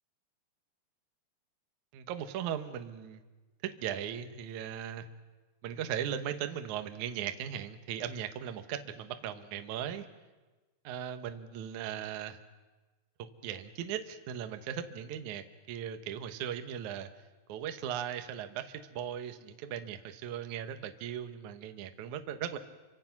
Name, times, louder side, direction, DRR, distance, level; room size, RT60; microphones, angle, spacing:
voice 1, 1.9-3.2 3.6-5.0 5.6-10.1 10.8-12.4 13.4-17.1 17.5-22.6, right 9 dB, 85° right, 8 dB, 1.7 m, -38 dB
28.5 x 25.0 x 6.0 m, 1.2 s
omnidirectional pair, 5.4 m